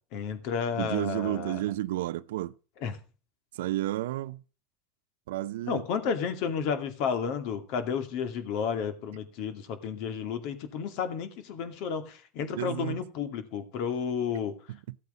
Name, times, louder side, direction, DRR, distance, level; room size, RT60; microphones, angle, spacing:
voice 1, 0.1-1.6 2.8-3.0 5.7-14.5, left 6 dB, 60° left, 2.5 m, -32 dB
voice 2, 0.8-2.5 3.5-4.4 5.3-5.8 12.6-13.0 14.7-15.0, right 15 dB, 85° right, 0.5 m, -31 dB
15.0 x 8.4 x 5.2 m
supercardioid pair, 130°, 0 cm